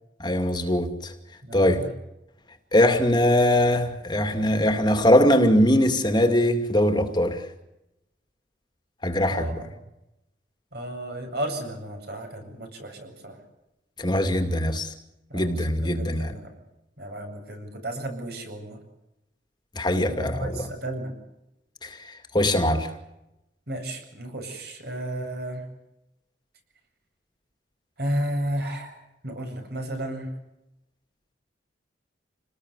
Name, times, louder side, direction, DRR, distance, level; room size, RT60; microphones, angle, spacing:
voice 1, 0.2-1.1 1.5-1.9 2.7-7.4 9.0-9.7 14.0-14.9 15.3-16.4 19.8-20.7 21.8-22.9, left 1 dB, 25° left, 2.4 m, -22 dB
voice 2, 1.4-1.9 9.3-9.7 10.7-13.4 15.3-16.5 17.0-18.8 20.1-21.1 23.7-25.6 28.0-28.9 29.2-30.3, right 1 dB, 60° right, 8.0 m, -33 dB
28.5 x 20.0 x 8.2 m
head